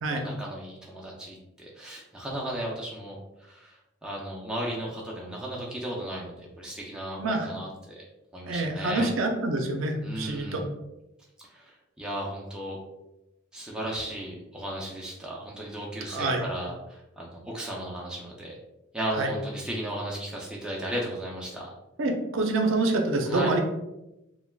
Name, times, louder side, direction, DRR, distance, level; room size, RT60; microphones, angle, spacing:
voice 1, 0.1-8.1 8.3-9.1 10.0-10.7 11.5-12.8 13.5-18.6 18.9-21.7 23.3-23.5, right 1 dB, 5° right, -4 dB, 0.4 m, -35 dB
voice 2, 7.2-7.5 8.4-10.6 16.1-16.4 19.2-19.3 22.0-23.6, right 2 dB, 70° right, 3 dB, 0.5 m, -26 dB
3.3 x 2.2 x 2.3 m, 0.93 s
head